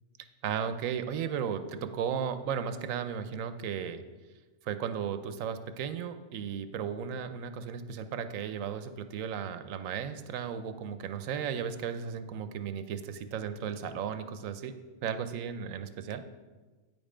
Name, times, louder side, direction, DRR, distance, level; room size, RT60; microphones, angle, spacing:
voice 1, 0.4-4.0 4.6-14.7 15.0-16.2, right 7 dB, 85° right, 10 dB, 1.0 m, -35 dB
9.3 x 5.4 x 4.9 m, 1.3 s
omnidirectional pair, 1.4 m